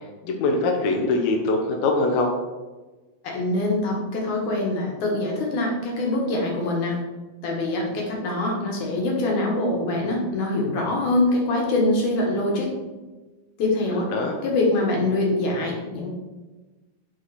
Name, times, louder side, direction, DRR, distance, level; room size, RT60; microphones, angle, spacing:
voice 1, 0.2-2.3 13.9-14.4, left 3 dB, 85° left, 2 dB, 1.6 m, -23 dB
voice 2, 3.2-7.0 7.4-12.7 13.6-14.1 14.4-16.1, left 2 dB, 60° left, -1 dB, 2.4 m, -24 dB
6.3 x 5.6 x 4.1 m, 1.2 s
omnidirectional pair, 4.5 m